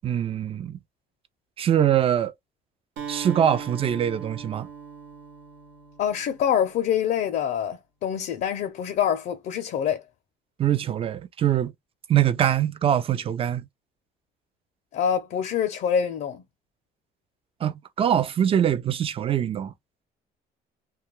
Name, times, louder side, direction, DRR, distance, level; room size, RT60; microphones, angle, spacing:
voice 1, 0.0-0.8 1.6-2.3 3.1-4.7 10.6-11.7 12.1-13.7 17.6-19.7, right 10 dB, 35° right, 0.3 m, -23 dB
Acoustic guitar, 3.0-6.8, right 7 dB, 90° right, 0.9 m, -39 dB
voice 2, 6.0-10.0 14.9-16.4, left 8 dB, 60° left, 0.5 m, -25 dB
2.3 x 2.2 x 3.0 m
cardioid pair, 110°, 17 cm